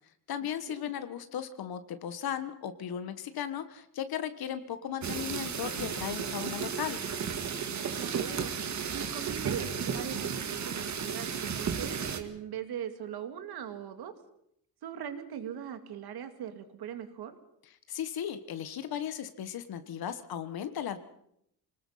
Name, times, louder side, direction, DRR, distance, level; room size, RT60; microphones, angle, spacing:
voice 1, 0.3-7.1 17.9-21.0, left 9 dB, 65° left, 10 dB, 1.4 m, -36 dB
sound 1, 5.0-12.2, right 7 dB, 45° right, 2.0 m, -34 dB
voice 2, 8.0-14.1 14.8-17.4, right 9 dB, 75° right, 8 dB, 2.3 m, -40 dB
25.0 x 19.5 x 5.6 m, 0.74 s
cardioid pair, 135°, 39 cm